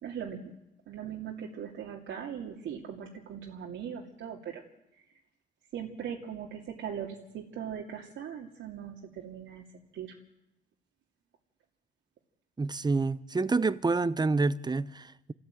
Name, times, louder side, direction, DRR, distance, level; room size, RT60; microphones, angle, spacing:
voice 1, 0.0-0.5 0.9-4.6 5.7-9.6 9.9-10.1, right 8 dB, 75° right, 2.6 m, -40 dB
voice 2, 12.6-15.3, right 3 dB, 20° right, 0.9 m, -28 dB
28.0 x 14.5 x 9.1 m
cardioid pair, 90°, 20 cm